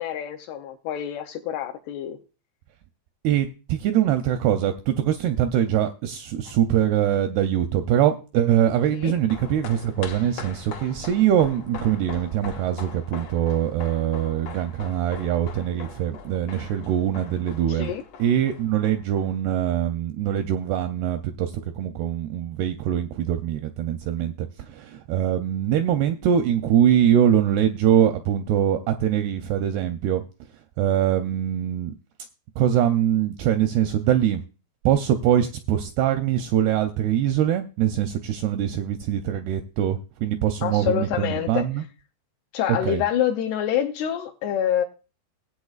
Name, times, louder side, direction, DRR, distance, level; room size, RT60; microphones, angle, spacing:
voice 1, 0.0-2.2 8.9-9.1 17.7-18.0 40.6-41.7 42.5-44.8, left 10 dB, 80° left, 2.4 m, -26 dB
voice 2, 3.2-17.9 18.2-30.2 30.8-31.9 32.6-34.4 34.9-41.8 42.7-43.0, right 10 dB, 85° right, 2.3 m, -23 dB
sound 1, 9.0-19.5 19.8-19.9, left 5 dB, 60° left, 2.3 m, -41 dB
18.5 x 8.4 x 2.4 m
omnidirectional pair, 5.2 m